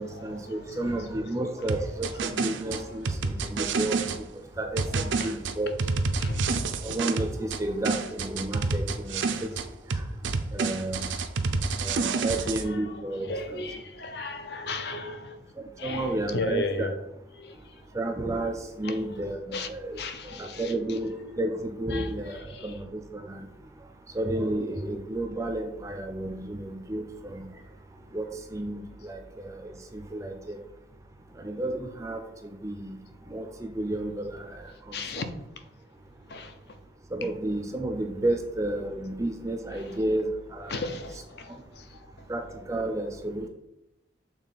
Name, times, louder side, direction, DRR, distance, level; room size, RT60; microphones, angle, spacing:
voice 1, 0.0-4.1 4.6-5.7 6.8-9.5 9.9-10.0 10.5-11.0 11.8-13.3 15.8-16.9 17.9-23.5 24.1-27.4 28.1-30.6 31.4-33.0 33.3-35.2 37.1-40.9 42.3-42.4 42.7-43.5, right 1 dB, 15° right, 0.4 m, -32 dB
voice 2, 0.5-0.9 3.4-3.5 3.7-3.9 5.2-5.3 6.2-6.7 13.3-15.4 15.8-16.1 16.3-16.9 17.4-17.5 19.5-19.7 20.0-20.7 21.9-22.1 34.9-35.3 36.3-36.5 40.7-42.0, left 2 dB, 55° left, 0.6 m, -34 dB
sound 1, 1.7-4.2 4.8-7.6 7.9-9.7 9.9-12.6, right 4 dB, 75° right, 0.5 m, -28 dB
6.4 x 3.7 x 4.0 m
head